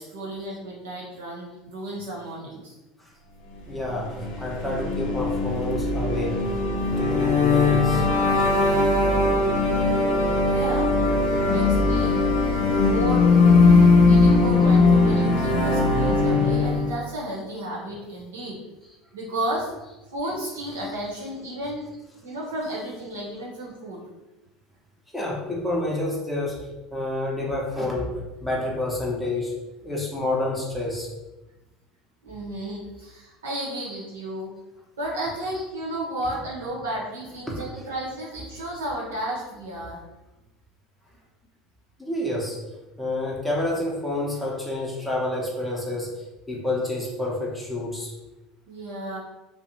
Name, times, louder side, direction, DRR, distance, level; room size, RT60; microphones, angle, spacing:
voice 1, 0.0-2.8 10.3-10.9 11.3-12.3 12.8-13.3 13.6-18.6 19.1-19.7 20.1-21.9 22.2-24.0 32.2-34.5 35.0-40.0 48.7-49.2, right 1 dB, 90° right, -4 dB, 0.9 m, -33 dB
voice 2, 3.7-8.0 20.3-20.4 20.8-20.9 25.1-29.5 29.8-31.1 33.9-34.0 35.5-35.6 37.4-37.8 42.0-42.6 43.0-48.1, left 1 dB, ahead, -4 dB, 0.8 m, -29 dB
sound 1, 4.0-17.0, left 3 dB, 70° left, 0.6 m, -20 dB
2.6 x 2.1 x 2.8 m, 1.0 s
hypercardioid pair, 85°, 0 cm